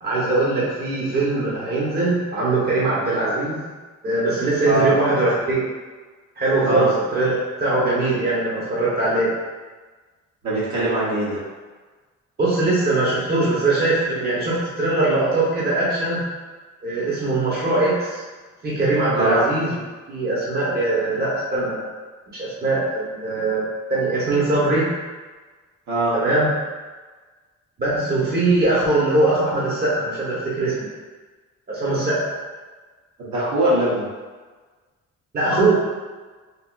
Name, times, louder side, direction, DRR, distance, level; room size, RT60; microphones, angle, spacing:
voice 1, 0.0-3.6 4.0-5.6 6.4-9.3 12.4-16.2 16.8-18.2 18.6-19.8 20.1-21.8 22.3-23.6 23.9-24.9 26.1-26.5 27.8-30.9 31.7-32.2 35.3-35.7, right 2 dB, 30° right, -7 dB, 1.0 m, -21 dB
voice 2, 10.4-11.4 19.1-19.4 25.9-26.1 33.2-34.1, right 1 dB, 65° right, -8 dB, 1.2 m, -21 dB
3.5 x 2.6 x 2.5 m, 1.4 s
cardioid pair, 90°, 30 cm